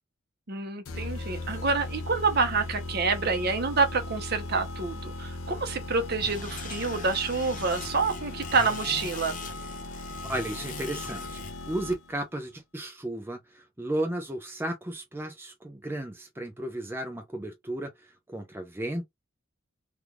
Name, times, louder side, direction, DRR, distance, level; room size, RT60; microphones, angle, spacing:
voice 1, 0.5-9.4, right 4 dB, 50° right, 0.8 m, -27 dB
sound 1, 0.9-12.2, left 2 dB, 80° left, 0.6 m, -38 dB
sound 2, 6.2-11.5, left 3 dB, 40° left, 0.9 m, -41 dB
voice 2, 10.2-17.9 18.3-19.1, right 1 dB, 10° right, 0.5 m, -34 dB
3.4 x 2.4 x 2.9 m
head